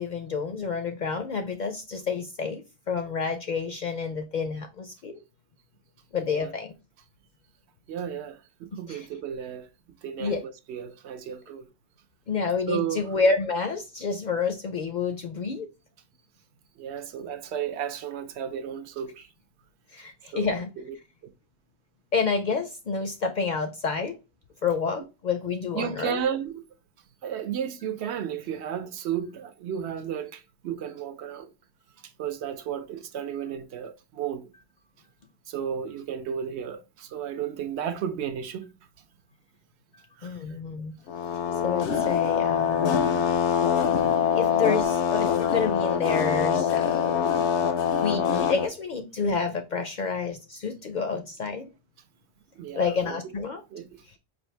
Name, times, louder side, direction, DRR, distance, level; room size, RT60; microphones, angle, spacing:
voice 1, 0.0-2.6 2.9-5.1 6.1-6.7 8.9-9.1 10.2-10.4 12.3-15.7 19.9-20.7 22.1-24.2 24.6-26.2 40.2-40.9 41.6-43.0 44.4-47.3 48.0-51.7 52.7-53.6, left 5 dB, 60° left, 0.5 m, -29 dB
voice 2, 7.9-9.7 10.0-11.7 12.7-13.0 16.8-19.3 20.3-20.9 25.7-26.6 27.2-31.5 32.2-34.5 35.5-38.7 40.2-40.4 42.6-42.8 52.6-53.2 53.7-54.2, right 8 dB, 75° right, 0.8 m, -33 dB
sound 1, 41.1-48.7, left 7 dB, 85° left, 0.9 m, -24 dB
4.4 x 2.6 x 3.1 m
omnidirectional pair, 1.2 m